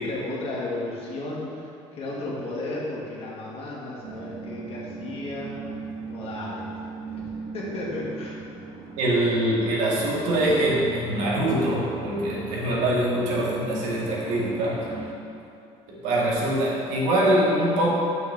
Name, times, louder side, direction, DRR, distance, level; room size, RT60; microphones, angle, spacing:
voice 1, 0.0-5.6 6.1-6.7 7.0-7.2 7.5-8.4, left 2 dB, 55° left, -5 dB, 2.0 m, -34 dB
sound 1, 4.0-15.1, right 5 dB, 70° right, 1.1 m, -39 dB
voice 2, 9.0-14.8 15.9-17.9, right 1 dB, 85° right, -5 dB, 2.0 m, -23 dB
6.3 x 5.5 x 6.3 m, 2.6 s
cardioid pair, 105°, 12 cm